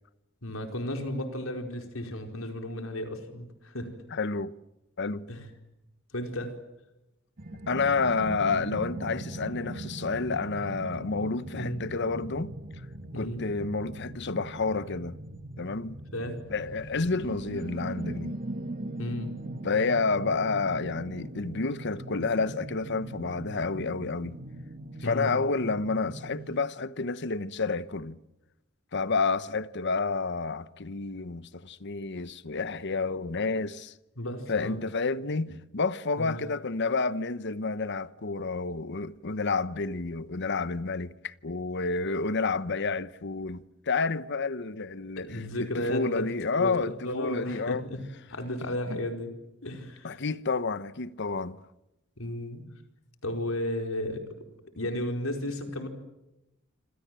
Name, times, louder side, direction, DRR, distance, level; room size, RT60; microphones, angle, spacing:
voice 1, 0.4-3.9 5.3-5.5 6.1-6.6 11.6-11.8 13.1-13.4 16.1-16.4 19.0-19.4 25.0-25.3 34.2-34.8 36.2-36.4 45.2-48.0 48.3-49.3 49.6-50.2 52.2-52.6 53.2-54.3 54.8-55.9, left 1 dB, 90° left, 4.7 m, -34 dB
voice 2, 4.1-4.5 5.0-5.2 7.7-12.5 13.2-15.2 15.6-16.0 16.5-18.4 19.6-24.4 25.0-28.2 28.9-33.9 34.5-47.8 48.9-49.0 50.0-51.6, left 4 dB, 60° left, 1.0 m, -30 dB
sound 1, 7.4-26.6, right 1 dB, 45° right, 1.8 m, -40 dB
27.5 x 26.5 x 7.7 m
head